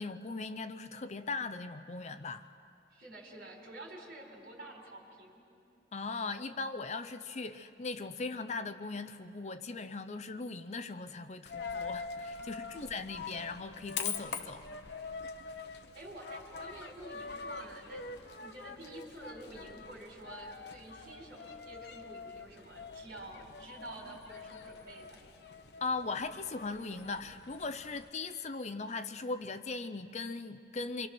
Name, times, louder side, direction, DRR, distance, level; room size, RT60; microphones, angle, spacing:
voice 1, 0.0-2.5 5.9-14.7 25.8-31.1, left 3 dB, 40° left, 11 dB, 0.6 m, -39 dB
voice 2, 2.9-5.5 12.4-12.9 15.9-18.2 18.4-25.2, right 1 dB, 55° right, 0 dB, 4.4 m, -49 dB
Coin (dropping), 11.4-28.1, left 5 dB, 60° left, 1.0 m, -44 dB
27.5 x 24.0 x 6.1 m, 2.5 s
head